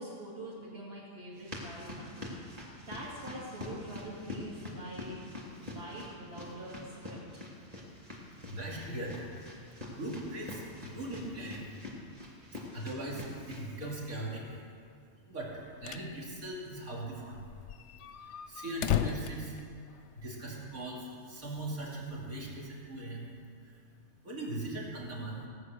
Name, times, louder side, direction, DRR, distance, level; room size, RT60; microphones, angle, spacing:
voice 1, 0.0-2.4 2.9-5.2 5.6-7.3 12.6-12.7 23.9-24.2, right 1 dB, 45° right, -9 dB, 2.7 m, -44 dB
sound 1, 1.3-13.6, left 2 dB, 25° right, 2.8 m, -45 dB
voice 2, 8.4-9.3 9.9-11.7 12.5-14.6 15.3-15.5 15.8-17.4 18.5-19.5 20.2-23.3 23.6-23.8 24.2-25.4, right 1 dB, 80° right, -4 dB, 3.2 m, -40 dB
sound 2, 15.5-16.1 16.4-16.5 16.8-16.9 17.3-20.3, left 10 dB, 65° left, 0.8 m, -35 dB
17.5 x 9.5 x 6.6 m, 2.3 s
omnidirectional pair, 1.5 m